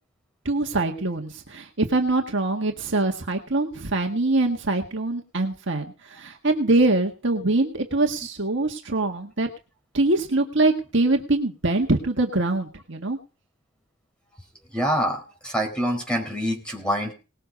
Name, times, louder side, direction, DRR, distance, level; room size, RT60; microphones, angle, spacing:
voice 1, 0.5-9.5 9.9-13.2, right 2 dB, 55° right, 3 dB, 1.7 m, -23 dB
voice 2, 14.7-17.1, equal, 5° left, 2 dB, 4.7 m, -26 dB
19.5 x 7.6 x 5.3 m, 0.33 s
head